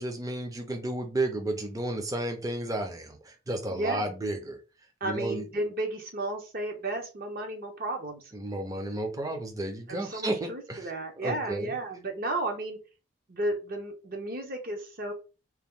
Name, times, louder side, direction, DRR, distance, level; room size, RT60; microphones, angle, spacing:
voice 1, 0.0-4.6 5.0-5.4 8.3-10.9 11.2-11.7, right 1 dB, 20° right, 4 dB, 0.5 m, -32 dB
voice 2, 3.7-4.1 5.0-8.2 9.9-12.8 13.3-15.1, right 2 dB, 45° right, 3 dB, 0.8 m, -33 dB
2.9 x 2.2 x 3.5 m, 0.32 s
head